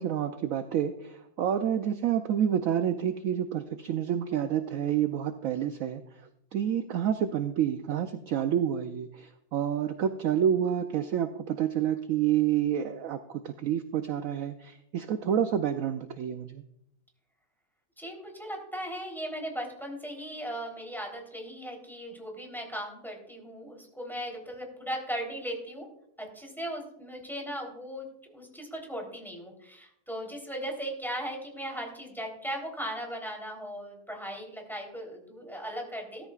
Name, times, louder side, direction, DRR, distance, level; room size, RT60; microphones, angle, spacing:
voice 1, 0.0-6.0 6.5-13.2 13.4-16.6, right 9 dB, 65° right, 8 dB, 0.9 m, -28 dB
voice 2, 18.0-25.9 26.2-36.3, equal, ahead, 0 dB, 3.5 m, -38 dB
16.5 x 14.0 x 2.4 m, 0.76 s
omnidirectional pair, 1.7 m